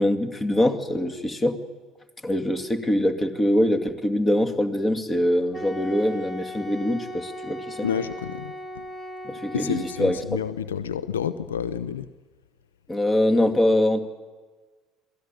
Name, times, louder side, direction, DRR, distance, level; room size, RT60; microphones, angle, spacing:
voice 1, 0.0-1.6 2.2-7.9 9.2-10.2 12.9-14.0, left 1 dB, 20° left, 6 dB, 2.4 m, -23 dB
Wind instrument woodwind instrument, 5.5-10.4, equal, ahead, 1.8 m, -37 dB
voice 2, 7.8-8.8 9.5-12.1, left 8 dB, 80° left, 14 dB, 0.6 m, -29 dB
26.5 x 18.0 x 9.1 m, 1.4 s
figure-of-eight pair, 60°, 0 cm